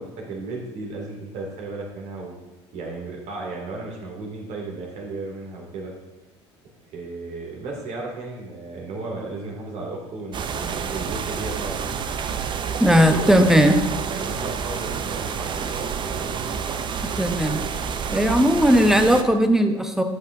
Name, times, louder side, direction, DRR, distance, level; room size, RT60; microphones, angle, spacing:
voice 1, 0.0-2.3 2.7-5.9 6.8-11.8 12.9-13.7 14.1-16.4, right 3 dB, 50° right, -1 dB, 2.5 m, -34 dB
sound 1, 10.3-19.2, right 6 dB, 30° right, 0.6 m, -29 dB
voice 2, 12.8-13.8 17.2-17.6 18.1-20.0, equal, 5° right, 7 dB, 0.8 m, -17 dB
11.0 x 7.4 x 2.7 m, 1.1 s
hypercardioid pair, 70°, 15 cm